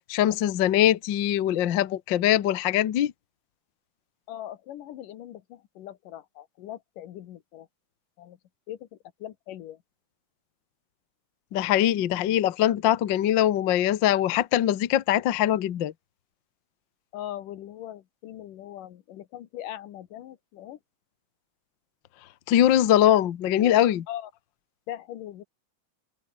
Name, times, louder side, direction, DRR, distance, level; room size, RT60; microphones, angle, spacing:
voice 1, 0.1-3.1 11.5-15.9 22.5-24.1, left 12 dB, 60° left, 1.2 m, -22 dB
voice 2, 4.3-7.7 8.2-8.4 8.7-9.8 17.1-20.8 24.1-24.3 24.9-25.4, left 12 dB, 90° left, 3.0 m, -40 dB
omnidirectional pair, 3.6 m